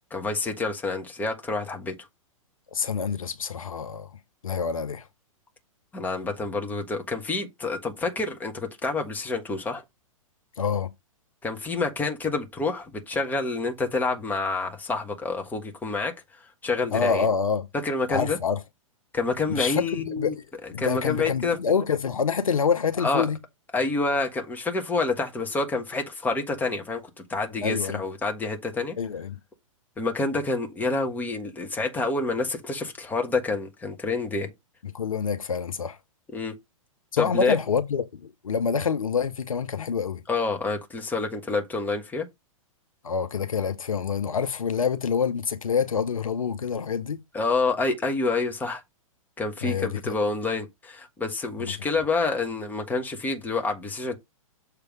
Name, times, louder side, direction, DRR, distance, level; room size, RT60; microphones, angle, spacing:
voice 1, 0.1-1.9 5.9-9.8 11.4-16.1 16.6-17.3 17.7-18.4 19.1-20.3 20.8-21.6 23.0-23.3 23.7-27.0 27.3-29.0 30.0-34.5 36.3-36.5 37.2-37.6 40.3-42.3 47.3-48.8 49.4-54.2, left 3 dB, 10° left, 1.4 m, -28 dB
voice 2, 2.7-4.1 4.4-5.0 10.6-10.9 16.9-17.7 18.1-18.6 19.5-20.4 20.7-23.4 27.6-28.0 29.0-29.4 34.9-36.0 37.1-40.2 43.0-47.2 49.6-50.1 51.6-51.7, left 6 dB, 70° left, 1.0 m, -27 dB
6.8 x 3.4 x 6.0 m
figure-of-eight pair, 110°, 18 cm